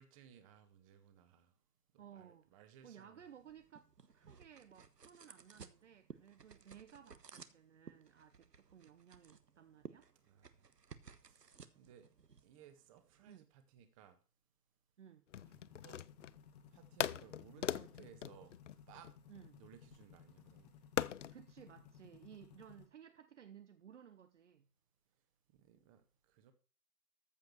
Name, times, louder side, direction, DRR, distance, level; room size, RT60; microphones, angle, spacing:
voice 1, 0.0-1.5 1.9-3.2 10.2-10.6 11.2-12.1 12.4-14.2 15.5-16.0 16.7-18.5 18.9-19.1 19.6-20.7 25.5-26.5, right 9 dB, 20° right, 1.4 m, -61 dB
voice 2, 2.0-10.1 13.2-13.5 15.0-15.2 19.3-19.6 21.3-24.7, right 9 dB, 50° right, 0.9 m, -58 dB
sound 1, 3.2-13.4, right 5 dB, 85° right, 1.3 m, -58 dB
sound 2, 15.3-16.4 17.0-19.5 21.0-21.4, left 9 dB, 50° left, 0.5 m, -40 dB
sound 3, 15.3-22.9, left 8 dB, 25° left, 1.6 m, -60 dB
14.0 x 5.3 x 6.6 m
figure-of-eight pair, 145°, 47 cm